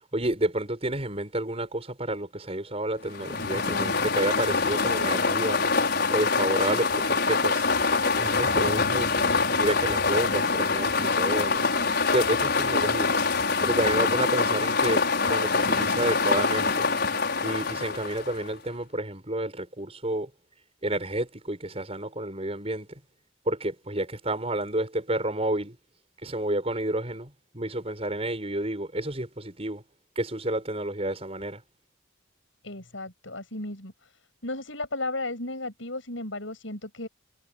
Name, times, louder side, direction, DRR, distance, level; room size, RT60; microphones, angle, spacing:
voice 1, 0.1-5.6 6.1-7.6 8.2-11.7 12.1-13.1 13.6-16.9 17.4-20.3 20.8-22.9 23.5-25.8 26.2-29.8 30.2-31.6, right 1 dB, 30° right, 6.4 m, -30 dB
sound 1, 3.1-18.5, left 4 dB, 55° left, 6.3 m, -25 dB
voice 2, 32.6-34.1 34.4-37.1, left 2 dB, 75° left, 7.9 m, -34 dB
head